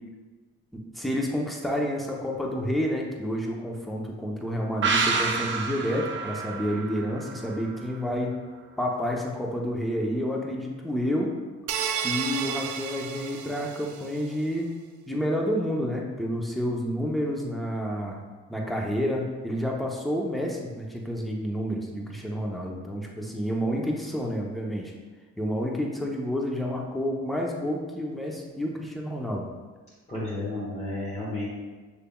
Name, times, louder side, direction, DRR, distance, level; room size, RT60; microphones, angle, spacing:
voice 1, 0.7-8.4 8.8-11.3 11.9-14.8 15.1-18.2 18.5-24.9 25.4-29.5, equal, ahead, -1 dB, 0.7 m, -29 dB
sound 1, 4.8-8.3 8.6-8.7, right 4 dB, 40° right, 0.6 m, -29 dB
sound 2, 11.7-14.2, right 8 dB, 80° right, 0.5 m, -32 dB
voice 2, 30.1-31.5, left 2 dB, 20° left, -8 dB, 1.4 m, -32 dB
6.9 x 3.3 x 2.3 m, 1.3 s
cardioid pair, 90°, 30 cm